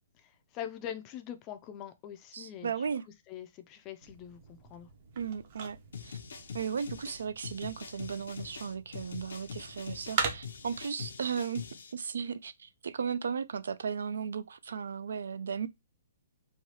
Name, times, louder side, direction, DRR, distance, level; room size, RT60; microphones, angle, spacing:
voice 1, 0.2-2.9 3.3-4.9, left 10 dB, 25° left, 0.4 m, -43 dB
voice 2, 2.3-3.0 5.2-5.8 6.0-6.2 6.5-11.6 11.9-15.7, right 6 dB, 80° right, 0.3 m, -35 dB
sound 1, 4.0-10.8, right 6 dB, 45° right, 0.6 m, -41 dB
sound 2, 5.9-11.9, left 6 dB, 75° left, 0.6 m, -44 dB
3.2 x 2.3 x 2.8 m
hypercardioid pair, 160°, 0 cm